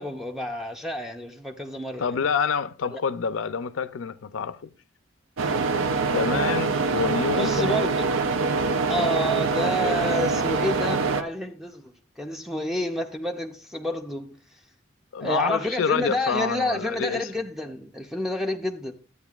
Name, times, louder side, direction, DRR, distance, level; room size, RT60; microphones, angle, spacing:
voice 1, 0.0-2.2 2.9-3.0 7.4-8.1 8.9-14.4 15.2-19.0, left 1 dB, ahead, 0.5 m, -29 dB
voice 2, 2.0-4.7 6.1-7.7 15.1-17.3, left 6 dB, 75° left, 0.5 m, -27 dB
sound 1, 5.4-11.2, right 4 dB, 90° right, 0.7 m, -24 dB
12.0 x 8.1 x 2.4 m
head